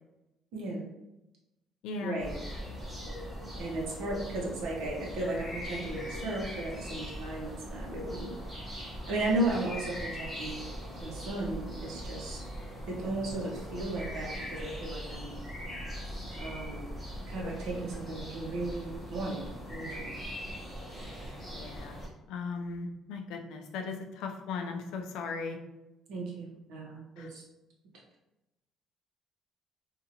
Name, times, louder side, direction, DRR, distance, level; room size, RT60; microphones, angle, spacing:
voice 1, 0.5-0.9 2.0-2.4 3.6-8.8 9.1-10.7 11.0-12.4 12.8-15.4 16.4-16.8 17.3-19.4 19.7-20.2 26.1-27.4, right 2 dB, 70° right, -2 dB, 0.8 m, -35 dB
voice 2, 1.8-2.2 21.5-25.6 27.2-27.3, left 4 dB, 90° left, 4 dB, 0.4 m, -38 dB
sound 1, 2.2-22.1, equal, 5° left, 0.8 m, -40 dB
2.7 x 2.4 x 2.7 m, 0.95 s
cardioid pair, 165°, 0 cm